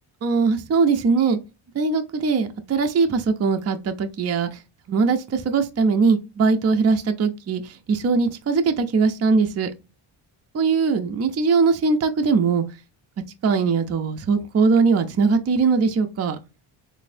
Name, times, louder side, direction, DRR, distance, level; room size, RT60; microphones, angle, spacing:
voice 1, 0.2-1.4 1.7-4.6 4.9-9.7 10.5-12.6 13.4-16.4, right 4 dB, 35° right, 0.4 m, -21 dB
4.1 x 2.6 x 2.5 m
cardioid pair, 115°, 49 cm